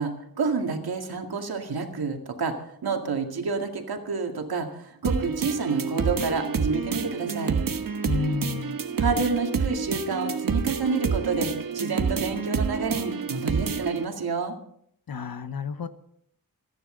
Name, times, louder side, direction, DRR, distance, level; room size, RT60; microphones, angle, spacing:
voice 1, 0.0-7.6 9.0-14.5, right 4 dB, 90° right, 3 dB, 2.2 m, -29 dB
sound 1, 5.0-14.0, right 5 dB, 65° right, 1.2 m, -28 dB
voice 2, 8.1-8.8 15.1-15.9, left 5 dB, 75° left, 11 dB, 1.1 m, -30 dB
27.0 x 10.0 x 3.9 m, 0.69 s
wide cardioid pair, 95°, 36 cm